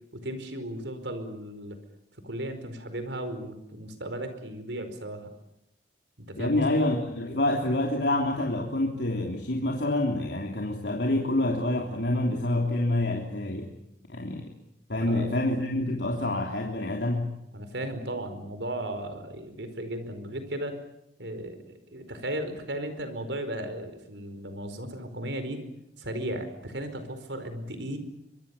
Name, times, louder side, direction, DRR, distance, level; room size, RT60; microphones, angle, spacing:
voice 1, 0.1-1.8 2.2-5.3 6.2-6.9 15.0-15.3 17.5-20.8 21.2-25.6 26.0-28.0, right 1 dB, 85° right, 9 dB, 4.8 m, -35 dB
voice 2, 6.4-13.7 14.1-14.5 14.9-17.3, left 1 dB, 80° left, 1 dB, 3.2 m, -27 dB
24.5 x 24.0 x 7.2 m, 0.83 s
head